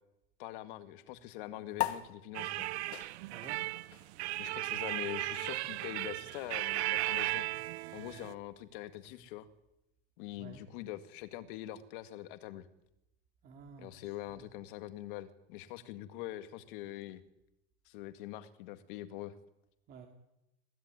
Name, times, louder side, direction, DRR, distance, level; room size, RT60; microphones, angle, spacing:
voice 1, 0.4-2.7 4.4-7.5 7.9-9.5 10.2-12.7 13.8-17.2 17.9-19.3, left 14 dB, 50° left, 11 dB, 2.0 m, -44 dB
sound 1, 1.7-8.6, left 15 dB, 65° left, 2.2 m, -43 dB
sound 2, 2.3-8.3, right 18 dB, 70° right, 0.9 m, -36 dB
voice 2, 3.3-3.6 10.4-10.6 13.4-14.5 19.9-20.1, right 6 dB, 25° right, 4 dB, 2.5 m, -52 dB
23.0 x 17.0 x 9.8 m, 0.87 s
supercardioid pair, 175°, 34 cm